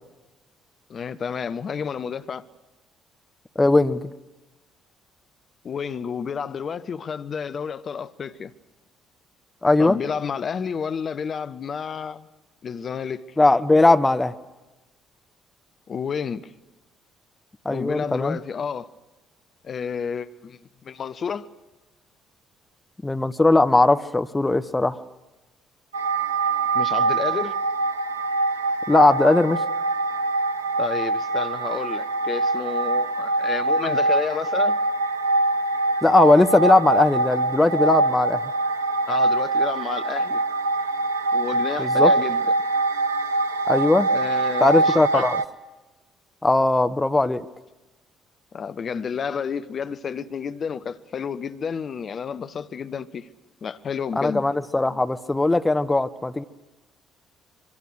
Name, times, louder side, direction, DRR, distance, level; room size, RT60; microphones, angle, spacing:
voice 1, 0.9-2.4 5.6-8.5 9.8-12.3 12.6-13.3 15.9-16.5 17.7-18.9 19.6-21.5 26.7-27.5 30.8-34.8 39.1-40.4 41.3-42.4 44.1-45.3 48.5-53.3 53.6-54.4, left 6 dB, 40° left, 0.9 m, -30 dB
voice 2, 3.6-4.1 9.6-10.0 13.4-14.3 17.6-18.4 23.0-25.0 28.9-29.6 36.0-38.5 41.8-42.1 43.7-44.1 44.6-45.4 46.4-47.4 54.2-56.4, left 2 dB, 15° left, 1.1 m, -19 dB
sound 1, 25.9-45.4, right 2 dB, 80° right, 0.7 m, -23 dB
24.5 x 24.5 x 6.5 m
figure-of-eight pair, 45°, 0 cm